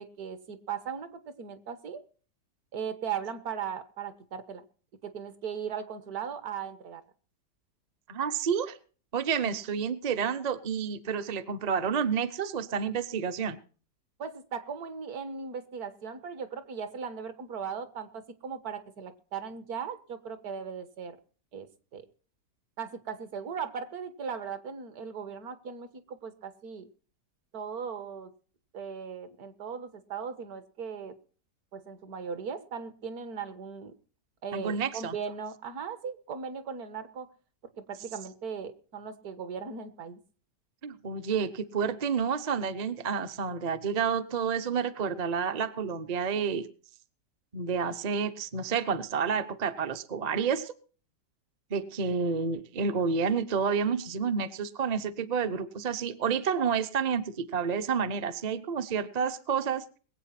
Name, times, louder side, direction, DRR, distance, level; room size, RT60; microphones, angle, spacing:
voice 1, 0.0-2.0 2.7-4.6 5.0-7.0 9.4-9.6 14.2-21.2 21.5-21.7 21.9-22.0 22.8-26.9 27.5-28.3 28.7-31.1 31.7-33.9 34.4-37.3 37.8-40.2, right 6 dB, 60° right, 12 dB, 1.7 m, -38 dB
voice 2, 8.1-8.8 9.1-13.6 34.5-35.1 40.8-46.7 47.5-50.7 51.7-59.8, right 6 dB, 40° right, 10 dB, 0.6 m, -29 dB
21.0 x 8.2 x 5.8 m, 0.41 s
omnidirectional pair, 1.9 m